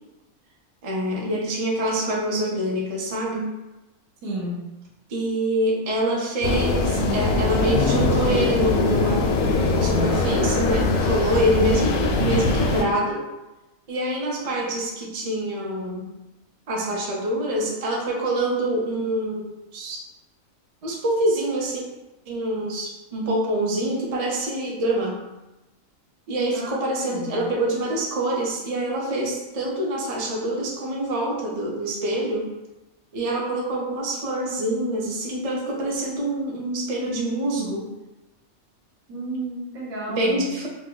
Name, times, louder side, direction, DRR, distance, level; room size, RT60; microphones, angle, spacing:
voice 1, 0.8-3.5 5.1-13.3 13.9-16.1 16.7-20.0 20.8-21.8 22.3-25.2 26.3-32.5 33.1-37.9 40.1-40.7, right 1 dB, 50° right, -3 dB, 0.4 m, -26 dB
voice 2, 4.2-4.6 26.5-27.4 39.1-40.5, right 1 dB, 75° right, -3 dB, 1.3 m, -32 dB
sound 1, 6.4-12.8, left 3 dB, 80° left, 1.0 m, -21 dB
2.9 x 2.2 x 3.7 m, 1.0 s
omnidirectional pair, 1.5 m